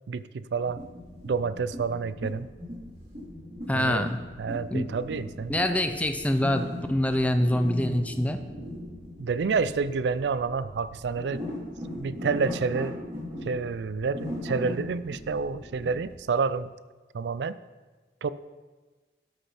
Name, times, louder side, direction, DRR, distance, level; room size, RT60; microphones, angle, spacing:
voice 1, 0.1-0.8 1.2-2.5 3.7-4.1 4.4-5.6 9.2-11.4 12.0-13.0 13.4-16.7 17.1-17.6 18.2-18.3, right 5 dB, 70° right, 15 dB, 0.4 m, -29 dB
sound 1, 0.6-16.1, left 1 dB, 35° right, 3.0 m, -39 dB
voice 2, 3.7-4.2 4.7-4.8 5.5-8.4, left 1 dB, 10° left, 7 dB, 0.5 m, -25 dB
12.5 x 6.6 x 4.2 m, 1.3 s
head